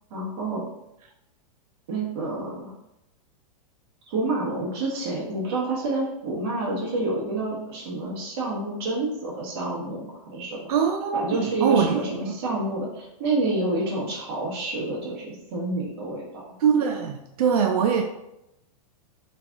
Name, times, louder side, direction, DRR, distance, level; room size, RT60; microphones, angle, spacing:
voice 1, 0.1-0.6 1.9-2.7 4.1-10.7 11.1-16.4, right 2 dB, 45° right, -4 dB, 1.2 m, -28 dB
voice 2, 10.7-12.0 12.3-12.4 16.6-18.0, right 7 dB, 90° right, 2 dB, 0.4 m, -22 dB
3.2 x 2.5 x 3.4 m, 0.86 s
supercardioid pair, 170°, 19 cm